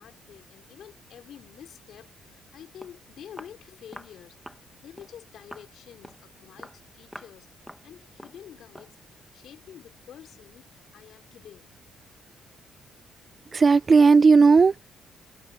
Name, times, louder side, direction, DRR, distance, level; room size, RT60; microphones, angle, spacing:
voice 1, 0.0-7.6 7.8-11.7, left 10 dB, 70° left, 3.8 m, -48 dB
Walk footsteps, 2.8-3.0 3.4-3.6 3.9-4.2 4.5-4.7 5.0-5.2 5.5-5.7 6.0-6.3 6.6-6.8 7.1-7.4 7.7-7.9 8.2-8.4 8.8-9.0, equal, ahead, 1.4 m, -45 dB
voice 2, 13.5-14.8, right 4 dB, 35° right, 0.4 m, -16 dB
cardioid pair, 90°, 0 cm